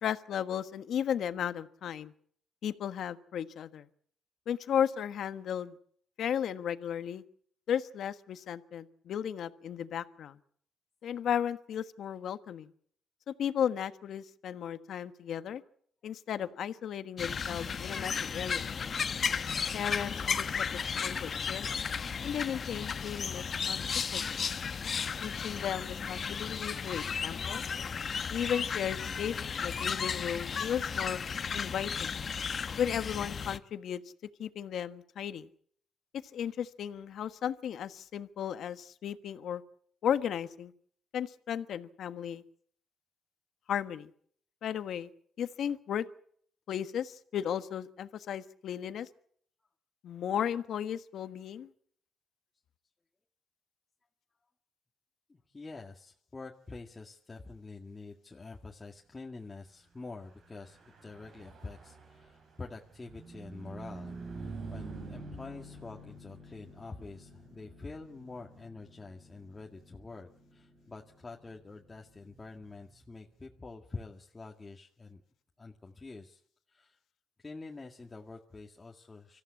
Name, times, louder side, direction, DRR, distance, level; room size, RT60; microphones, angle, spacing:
voice 1, 0.0-2.1 2.6-3.9 4.5-5.7 6.2-7.2 7.7-10.4 11.0-12.7 13.3-15.6 16.0-18.7 19.7-20.6 20.9-21.8 22.2-24.4 25.2-27.6 28.3-31.2 31.5-32.1 32.8-34.0 34.4-35.5 36.3-39.6 40.0-40.7 41.1-42.4 43.7-44.1 44.6-45.1 45.4-46.0 46.7-49.1 50.0-51.7, left 9 dB, 70° left, 11 dB, 1.3 m, -35 dB
sound 1, 17.2-33.6, left 6 dB, 45° left, 1.0 m, -34 dB
voice 2, 55.3-75.2 75.6-76.4 76.7-77.0 77.4-79.4, left 3 dB, 25° left, 0 dB, 2.0 m, -47 dB
Car passing by / Truck, 60.3-74.0, right 3 dB, 70° right, 5.5 m, -48 dB
25.5 x 14.5 x 8.6 m, 0.62 s
cardioid pair, 90°, 0 cm